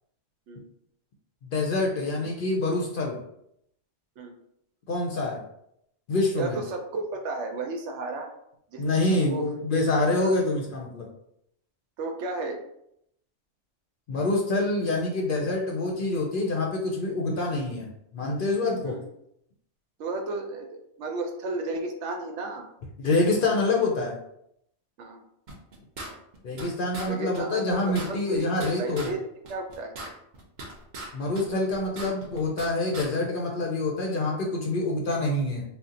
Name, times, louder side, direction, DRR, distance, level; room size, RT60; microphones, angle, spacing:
voice 1, 1.4-3.2 4.9-5.4 6.1-6.6 8.8-11.1 14.1-19.0 23.0-24.2 26.4-29.1 31.1-35.6, left 2 dB, 60° left, -1 dB, 0.6 m, -26 dB
voice 2, 6.3-8.3 8.7-9.5 10.2-10.3 12.0-12.6 18.8-19.0 20.0-22.7 25.0-25.2 26.1-26.2 27.1-29.2 29.5-30.0, right 3 dB, 75° right, 3 dB, 0.9 m, -33 dB
sound 1, 25.5-26.7 26.9-27.1 27.3-27.4 27.7-29.1 29.4-31.1 31.3-32.7 32.9-33.1, right 2 dB, 50° right, 0.7 m, -39 dB
2.7 x 2.1 x 3.7 m, 0.75 s
omnidirectional pair, 1.2 m